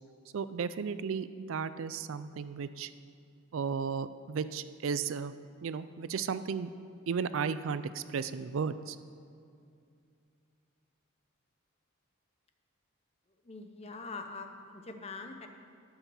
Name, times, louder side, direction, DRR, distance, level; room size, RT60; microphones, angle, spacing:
voice 1, 0.3-2.9 3.5-5.3 5.6-6.7 7.1-9.0, right 6 dB, 70° right, 14 dB, 0.4 m, -34 dB
voice 2, 13.5-15.5, left 3 dB, 30° left, 5 dB, 0.8 m, -43 dB
12.0 x 5.8 x 7.1 m, 2.4 s
head